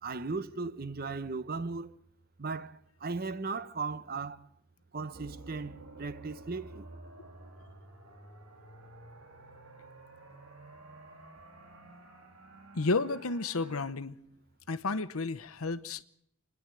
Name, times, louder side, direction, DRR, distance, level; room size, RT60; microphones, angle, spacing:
voice 1, 0.0-2.0 2.4-4.5 4.9-6.9, right 4 dB, 40° right, 0.8 m, -37 dB
sound 1, 5.1-13.9, right 2 dB, 80° right, 3.0 m, -51 dB
voice 2, 12.7-14.2 14.7-16.0, left 3 dB, 80° left, 1.0 m, -32 dB
28.5 x 10.5 x 9.0 m
head